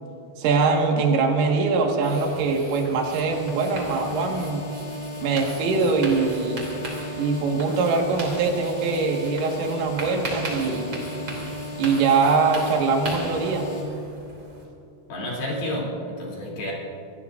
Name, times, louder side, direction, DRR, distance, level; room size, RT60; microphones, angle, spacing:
voice 1, 0.4-4.6 5.2-6.7 7.2-11.0 11.8-13.7, right 4 dB, 90° right, 1 dB, 4.3 m, -23 dB
sound 1, 2.0-14.6, right 1 dB, 30° right, 2.8 m, -38 dB
sound 2, 3.3-13.8, left 1 dB, 80° left, 5.4 m, -35 dB
voice 2, 15.1-16.7, left 1 dB, 55° left, -4 dB, 4.8 m, -30 dB
27.5 x 19.0 x 2.6 m, 2.8 s
omnidirectional pair, 5.7 m